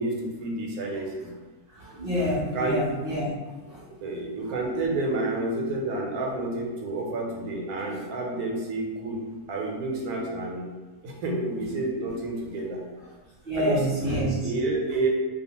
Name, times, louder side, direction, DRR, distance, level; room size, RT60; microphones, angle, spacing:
voice 1, 0.0-1.3 2.5-2.9 4.0-10.7 11.0-12.8 13.5-15.1, right 2 dB, 85° right, 0 dB, 1.1 m, -29 dB
voice 2, 1.7-3.3 3.7-3.8 13.5-14.3, equal, 55° right, -8 dB, 0.7 m, -27 dB
2.4 x 2.3 x 2.8 m, 1.3 s
omnidirectional pair, 1.5 m